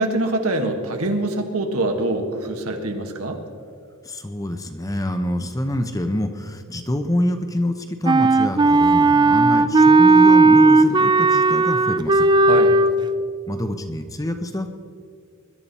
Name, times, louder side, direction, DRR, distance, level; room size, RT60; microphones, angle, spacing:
voice 1, 0.0-3.4 12.5-12.8, right 2 dB, 80° right, 4 dB, 1.6 m, -24 dB
voice 2, 4.0-12.3 13.5-14.7, left 1 dB, 15° left, 7 dB, 0.7 m, -26 dB
Wind instrument woodwind instrument, 8.1-12.9, right 3 dB, 20° right, 0.3 m, -15 dB
21.0 x 11.5 x 4.2 m, 2.1 s
head